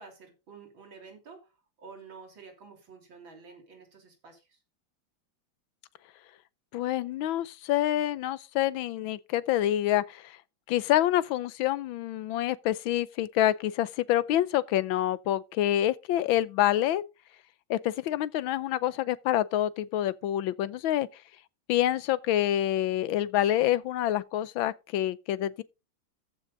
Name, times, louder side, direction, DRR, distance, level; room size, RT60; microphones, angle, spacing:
voice 1, 0.0-1.5 1.8-4.6, right 5 dB, 75° right, 4.1 m, -50 dB
voice 2, 6.7-10.4 10.7-17.0 17.7-21.1 21.7-25.6, left 13 dB, 85° left, 1.5 m, -27 dB
14.0 x 6.2 x 3.9 m
omnidirectional pair, 2.1 m